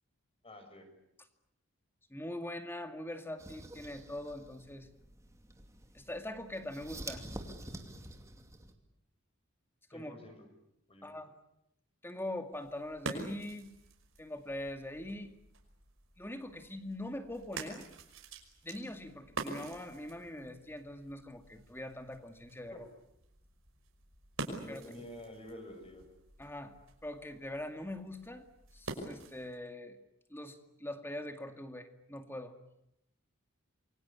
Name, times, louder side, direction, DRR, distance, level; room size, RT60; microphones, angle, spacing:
voice 1, 0.4-0.9 9.9-10.5 10.9-11.1 22.7-22.8 24.5-26.0, left 1 dB, 30° left, 6 dB, 6.2 m, -49 dB
voice 2, 2.1-4.9 5.9-7.2 9.9-10.1 11.0-11.3 12.0-13.7 14.2-15.3 16.2-17.9 18.6-22.9 24.7-24.8 26.4-26.8 27.0-28.4 28.7-30.0 30.3-32.5, left 1 dB, 10° left, 7 dB, 2.2 m, -42 dB
sound 1, 3.4-8.7, right 1 dB, 15° right, 2.5 m, -48 dB
sound 2, 12.4-29.6, right 3 dB, 80° right, 5.6 m, -47 dB
28.0 x 23.5 x 8.5 m, 0.82 s
head